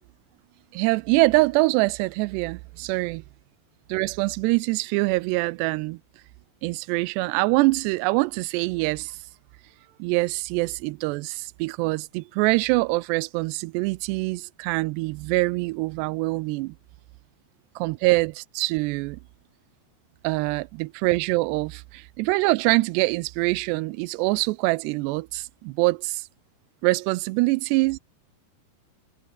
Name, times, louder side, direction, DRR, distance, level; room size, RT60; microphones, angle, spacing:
voice 1, 0.7-3.2 3.9-6.0 6.6-9.2 10.0-16.8 17.8-19.2 20.2-26.3 26.8-28.0, right 23 dB, 85° right, 2.6 m, -24 dB
omnidirectional pair, 4.9 m